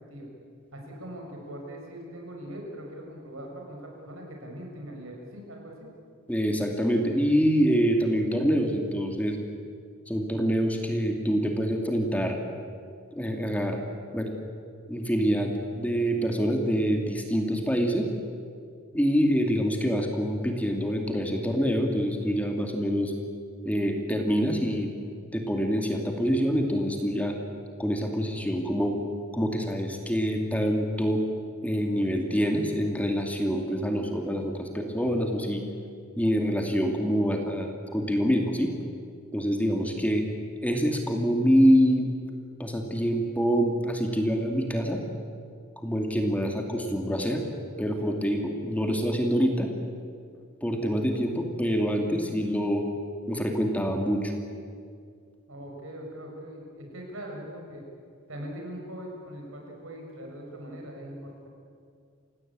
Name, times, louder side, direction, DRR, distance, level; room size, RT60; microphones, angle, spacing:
voice 1, 0.7-5.9 55.5-57.8 58.3-61.5, equal, 75° right, 1 dB, 6.6 m, -41 dB
voice 2, 6.3-9.4 10.1-12.4 13.1-13.8 14.1-14.3 14.9-18.1 18.9-23.1 23.7-24.9 25.3-27.4 27.8-29.0 29.3-31.2 31.6-35.6 36.2-38.7 39.3-40.3 40.6-42.1 42.6-45.0 45.8-47.4 47.8-49.7 50.6-52.8 53.3-54.3, equal, 5° left, 3 dB, 2.2 m, -26 dB
29.0 x 16.5 x 8.8 m, 2.3 s
head